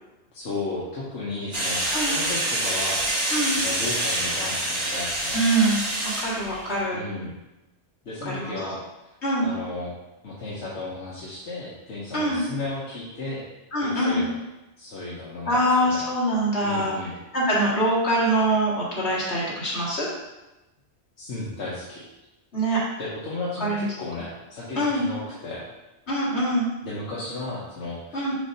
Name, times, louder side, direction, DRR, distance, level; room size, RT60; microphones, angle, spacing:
voice 1, 0.3-3.1 3.5-5.4 6.9-7.3 8.0-8.8 9.4-9.9 10.2-13.4 13.8-14.3 14.8-15.5 15.8-16.0 16.6-17.1 21.2-22.0 23.0-25.6 26.8-28.5, left 2 dB, 85° left, -7 dB, 1.4 m, -34 dB
sound 1, 1.5-6.8, right 1 dB, 30° right, 1.0 m, -26 dB
voice 2, 5.3-5.8 6.2-7.0 8.3-8.6 9.2-9.5 12.1-12.4 13.7-14.2 15.5-17.0 17.3-20.1 22.5-22.8 23.6-23.8 24.8-25.1 26.1-26.7 28.1-28.3, right 1 dB, 70° left, -7 dB, 2.3 m, -23 dB
6.7 x 2.8 x 5.5 m, 1.0 s
omnidirectional pair, 1.2 m